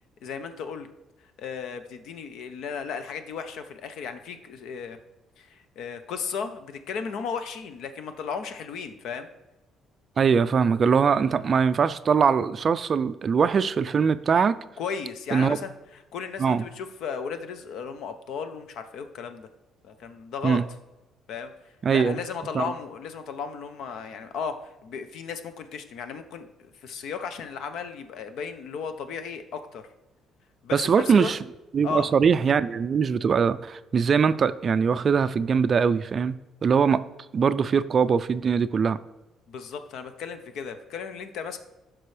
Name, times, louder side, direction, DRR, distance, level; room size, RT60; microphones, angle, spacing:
voice 1, 0.2-0.9 1.4-5.0 5.4-9.3 14.8-19.5 19.8-20.6 21.3-29.8 30.6-31.3 31.8-32.1 39.5-41.6, left 6 dB, 70° left, 9 dB, 0.8 m, -35 dB
voice 2, 10.2-14.6 15.3-15.6 16.4-16.6 20.4-20.6 21.8-22.2 22.5-22.7 30.7-31.4 31.7-36.3 36.6-37.0 37.3-39.0, right 6 dB, 35° right, 13 dB, 0.3 m, -22 dB
14.5 x 6.0 x 3.3 m, 1.0 s
cardioid pair, 145°, 0 cm